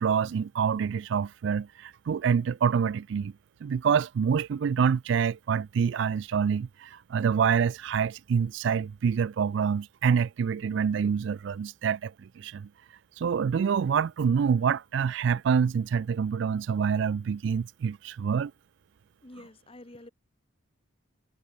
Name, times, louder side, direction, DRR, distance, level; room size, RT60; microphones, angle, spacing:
voice 1, 0.0-3.3 3.6-12.7 13.2-18.5, right 6 dB, 60° right, 0.3 m, -26 dB
voice 2, 19.2-20.1, left 1 dB, 25° left, 1.2 m, -48 dB
head